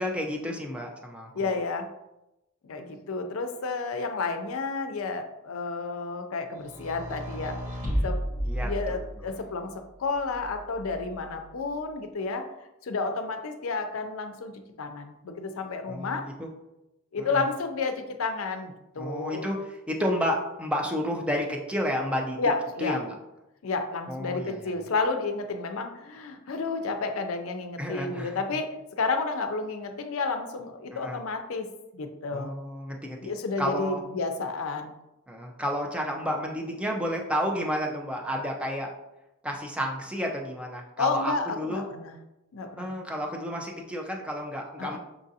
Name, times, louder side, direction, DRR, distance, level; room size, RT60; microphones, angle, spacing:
voice 1, 0.0-1.5 8.4-9.3 15.9-16.5 17.2-17.4 19.0-22.4 22.8-23.2 24.1-24.9 27.8-28.4 30.9-31.2 32.3-33.3 33.6-34.0 35.3-38.9 39.4-41.8 42.6-45.0, equal, 5° right, 0 dB, 0.4 m, -31 dB
voice 2, 1.3-1.9 2.6-7.6 8.0-8.2 8.6-9.7 10.0-12.4 12.8-14.5 14.8-16.2 17.1-19.5 22.4-23.0 23.6-28.7 29.0-31.7 31.9-32.5 33.2-34.9 41.0-42.2 42.5-42.9 44.8-45.0, left 4 dB, 75° left, 6 dB, 0.5 m, -31 dB
sound 1, 6.6-9.4 10.3-11.2, equal, 35° right, 1.1 m, -32 dB
5.9 x 2.5 x 2.7 m, 0.94 s
head